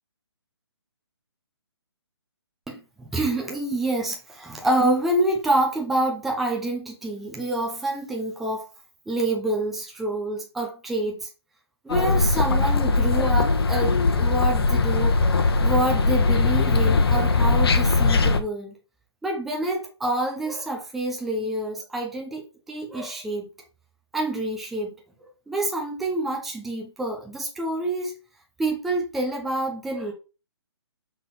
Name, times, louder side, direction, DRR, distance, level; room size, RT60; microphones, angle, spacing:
voice 1, 2.7-8.7 9.1-11.3 11.8-15.2 15.6-18.7 19.2-23.5 24.1-24.9 25.5-28.2 28.6-30.1, right 1 dB, ahead, 0.4 m, -27 dB
sound 1, 11.9-18.4, left 3 dB, 60° left, 1.0 m, -20 dB
6.9 x 3.7 x 4.0 m
hypercardioid pair, 170°, 14 cm